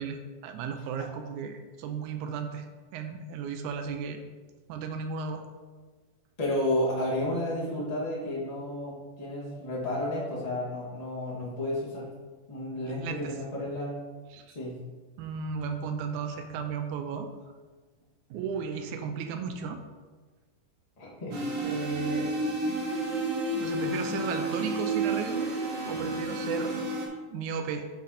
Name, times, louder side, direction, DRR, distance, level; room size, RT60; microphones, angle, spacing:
voice 1, 0.0-2.7 2.9-4.2 4.7-5.4 12.9-13.3 14.3-14.6 15.2-17.3 18.3-19.8 21.6-22.5 23.6-25.5 25.9-26.8 27.3-27.9, right 6 dB, 80° right, 6 dB, 1.9 m, -35 dB
voice 2, 6.4-12.1 12.5-14.0 14.5-14.8 21.0-21.4, left 1 dB, 80° left, -5 dB, 0.3 m, -32 dB
sound 1, 21.3-27.1, right 2 dB, 60° right, 1.2 m, -31 dB
9.1 x 3.8 x 4.2 m, 1.3 s
omnidirectional pair, 3.8 m